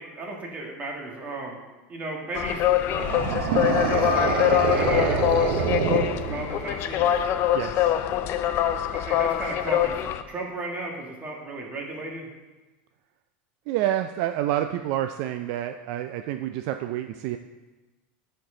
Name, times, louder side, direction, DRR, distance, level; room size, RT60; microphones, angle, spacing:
voice 1, 0.0-1.6 1.9-3.1 3.9-7.0 9.0-12.3, right 2 dB, 25° right, 0 dB, 1.7 m, -35 dB
sound 1, 2.4-10.2, left 11 dB, 45° left, 0.4 m, -24 dB
sound 2, 2.9-6.8, right 6 dB, 85° right, 0.8 m, -26 dB
voice 2, 7.5-7.9 13.7-17.4, right 12 dB, 60° right, 8 dB, 0.3 m, -28 dB
10.5 x 4.5 x 3.8 m, 1.2 s
supercardioid pair, 135°, 6 cm